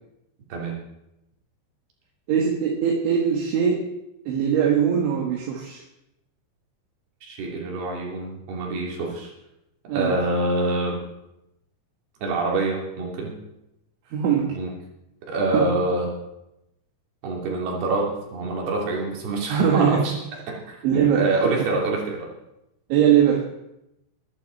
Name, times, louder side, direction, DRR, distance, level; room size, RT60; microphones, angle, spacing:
voice 1, 2.3-3.9 4.3-5.8 9.9-10.2 14.1-14.5 15.5-15.7 19.5-20.2 20.8-21.7 22.9-23.5, right 8 dB, 75° right, -1 dB, 3.9 m, -21 dB
voice 2, 7.2-9.3 9.9-11.0 12.2-13.4 14.5-14.7 15.3-16.2 17.2-20.2 20.5-22.3, right 2 dB, 55° right, -1 dB, 4.9 m, -26 dB
22.0 x 11.0 x 4.1 m, 0.88 s
omnidirectional pair, 5.6 m